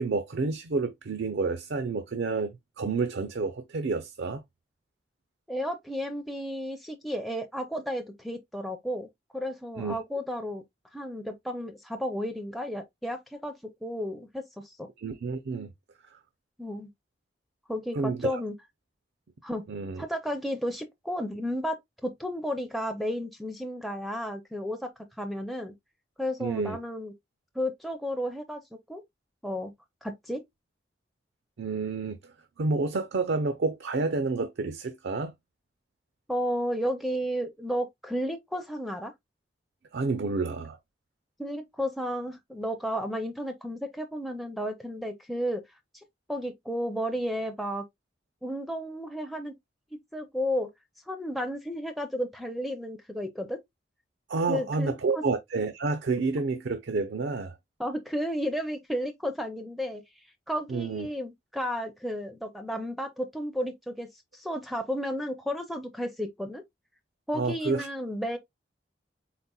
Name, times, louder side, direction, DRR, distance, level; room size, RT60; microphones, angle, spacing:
voice 1, 0.0-4.4 9.8-9.9 15.0-15.7 16.1-16.2 17.9-18.4 19.7-20.1 26.4-26.8 31.6-35.3 39.9-40.8 54.3-57.6 60.7-61.1 67.3-67.9, right 4 dB, 70° right, 0.5 m, -29 dB
voice 2, 5.5-9.1 9.3-10.6 10.9-13.5 13.8-14.9 16.6-16.9 17.7-18.5 19.4-19.7 20.0-24.9 25.2-25.7 26.2-27.1 27.5-28.6 28.9-29.0 29.4-29.7 30.0-30.4 36.3-39.1 41.4-45.6 46.3-47.8 48.4-49.5 50.1-50.7 51.1-53.6 54.5-55.2 57.8-60.0 60.5-66.6 67.3-68.4, equal, ahead, 0.4 m, -33 dB
4.1 x 4.0 x 2.2 m
head